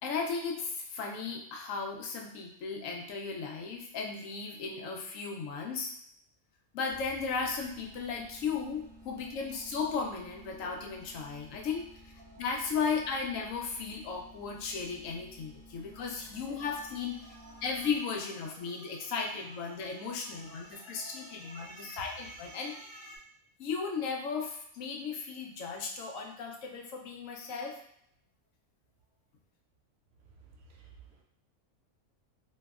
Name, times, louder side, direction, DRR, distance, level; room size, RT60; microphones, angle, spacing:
voice 1, 0.0-5.9 6.7-17.2 17.6-22.7 23.6-27.8, left 5 dB, 75° left, 1 dB, 0.9 m, -36 dB
sound 1, 6.9-18.3, equal, 20° left, 0.6 m, -54 dB
sound 2, 15.8-23.2, right 1 dB, 50° right, 0.9 m, -53 dB
voice 2, 20.4-21.7 30.5-31.2, right 3 dB, 65° right, 1 dB, 0.5 m, -57 dB
3.0 x 2.6 x 2.3 m, 0.71 s
omnidirectional pair, 1.4 m